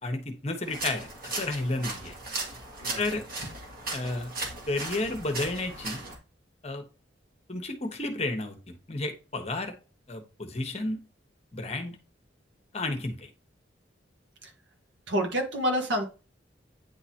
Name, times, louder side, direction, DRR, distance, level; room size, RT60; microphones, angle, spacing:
voice 1, 0.0-2.2 3.0-3.2 3.9-4.3 4.7-6.0 6.6-6.8 7.5-9.7 10.1-11.0 11.5-12.0 12.7-13.3, left 2 dB, 35° left, 6 dB, 1.1 m, -32 dB
sound 1, 0.6-6.2, right 2 dB, 50° right, 1.9 m, -37 dB
voice 2, 15.1-16.0, equal, 75° right, 3 dB, 1.6 m, -27 dB
9.3 x 3.8 x 2.8 m, 0.32 s
head